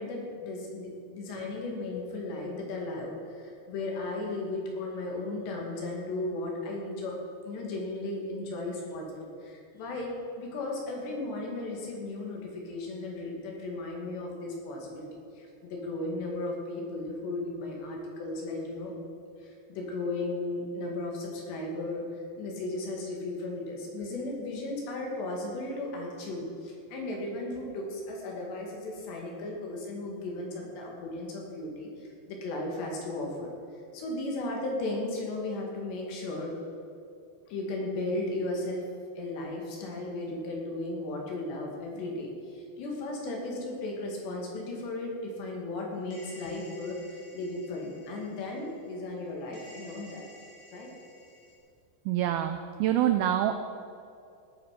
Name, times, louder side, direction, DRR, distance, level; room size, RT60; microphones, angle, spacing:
voice 1, 0.0-7.2 7.4-18.9 19.4-22.1 22.4-33.5 33.9-36.5 37.5-38.9 39.2-50.3 50.7-50.9, left 2 dB, 75° left, -1 dB, 4.4 m, -35 dB
sound 1, 46.1-49.2 49.5-51.6, equal, 35° left, 5.0 m, -53 dB
voice 2, 52.1-53.5, right 11 dB, 90° right, 7 dB, 2.1 m, -26 dB
18.5 x 9.1 x 5.2 m, 2.5 s
omnidirectional pair, 5.0 m